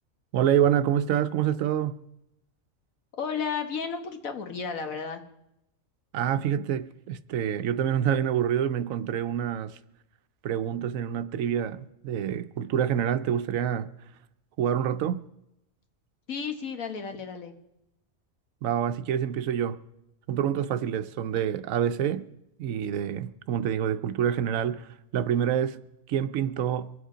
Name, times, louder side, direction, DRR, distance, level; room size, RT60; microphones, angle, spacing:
voice 1, 0.3-2.0 6.1-9.8 10.4-13.9 14.6-15.2 18.6-19.8 20.3-22.3 22.6-25.8 26.1-26.9, right 9 dB, 80° right, 1.1 m, -27 dB
voice 2, 3.2-5.2 16.3-17.6, left 6 dB, 85° left, 1.7 m, -33 dB
23.5 x 8.1 x 5.1 m
omnidirectional pair, 1.4 m